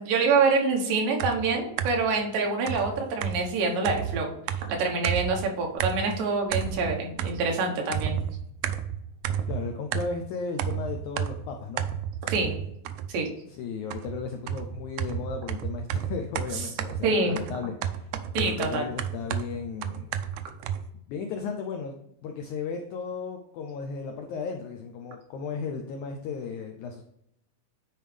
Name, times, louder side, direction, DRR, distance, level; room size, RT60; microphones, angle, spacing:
voice 1, 0.0-4.3 4.7-8.2 12.3-12.6 13.1-13.3 17.0-17.4 18.3-18.8, right 4 dB, 75° right, 1 dB, 2.8 m, -26 dB
sound 1, 1.2-2.1 2.7-5.5 5.8-6.2 6.5-7.6 7.9-10.3 10.6-13.3 13.9-20.9, right 9 dB, 90° right, 1.7 m, -32 dB
voice 2, 9.5-11.8 13.6-18.1 18.4-20.1 21.1-21.9 22.2-27.0, left 5 dB, 85° left, 4 dB, 1.7 m, -35 dB
9.1 x 4.6 x 3.3 m, 0.75 s
omnidirectional pair, 4.2 m